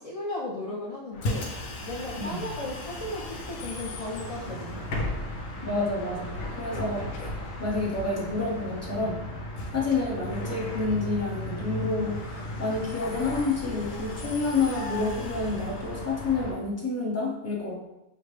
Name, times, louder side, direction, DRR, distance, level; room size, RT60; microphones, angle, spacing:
voice 1, 0.0-1.5 1.9-5.0, left 1 dB, 50° left, -5 dB, 0.4 m, -36 dB
Bus, 1.1-16.6, left 1 dB, 85° left, 1.1 m, -35 dB
voice 2, 2.2-2.5 5.6-7.3 7.6-9.2 9.7-17.7, left 3 dB, 15° left, -4 dB, 0.6 m, -29 dB
5.9 x 2.1 x 3.2 m, 0.93 s
omnidirectional pair, 1.3 m